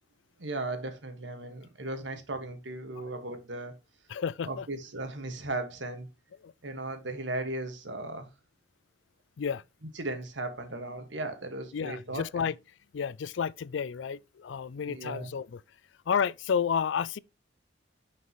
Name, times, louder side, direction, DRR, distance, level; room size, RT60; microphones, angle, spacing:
voice 1, 0.4-3.8 4.5-6.1 6.6-8.3 9.9-12.5 14.8-15.3, right 2 dB, 80° right, 1.7 m, -36 dB
voice 2, 4.1-4.7 6.4-6.5 9.4-9.6 11.7-12.5 12.9-15.6 16.1-17.2, left 7 dB, 80° left, 0.4 m, -31 dB
9.6 x 5.2 x 3.1 m
head